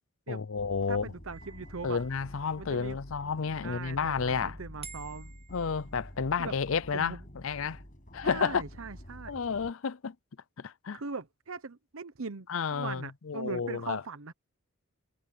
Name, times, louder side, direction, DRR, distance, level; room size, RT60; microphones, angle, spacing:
voice 1, 0.3-1.1 1.8-4.6 5.5-7.2 7.4-7.8 8.1-8.6 9.3-10.1 10.6-11.0 12.5-14.0, left 5 dB, 65° left, 0.5 m, -31 dB
sound 1, 0.6-9.7, equal, 40° left, 7.5 m, -48 dB
voice 2, 0.9-2.0 2.6-3.0 3.6-5.4 6.4-6.5 6.9-7.2 8.2-9.4 10.9-14.3, right 4 dB, 70° right, 0.9 m, -40 dB
sound 2, 1.3-2.9 4.8-6.4, right 5 dB, 25° right, 1.5 m, -51 dB
head